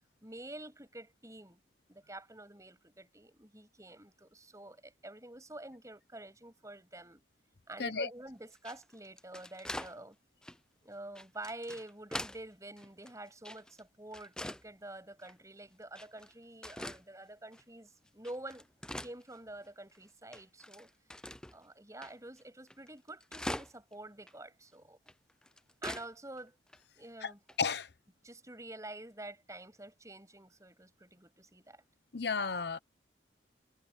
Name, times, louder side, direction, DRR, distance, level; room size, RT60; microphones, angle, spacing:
voice 1, 0.2-1.6 1.9-7.2 7.7-10.2 10.8-18.7 19.0-20.9 21.5-25.0 25.8-26.6 27.0-27.4 28.2-31.8, right 1 dB, 15° right, 7.1 m, -48 dB
sound 1, 8.6-10.0 10.4-10.6 11.2-12.4 12.8-13.8 14.1-14.7 15.2-15.3 16.0-16.3 16.6-17.0 17.5-17.6 18.1-19.7 20.0-20.1 20.3-21.6 22.0-22.1 22.4-22.5 22.7-23.9 24.3-24.4 25.1-26.1 26.4-26.5 26.7-26.8 27.5-27.7, left 1 dB, 5° left, 0.6 m, -43 dB
voice 2, 27.6-27.9 32.1-32.8, left 5 dB, 65° left, 0.9 m, -33 dB
head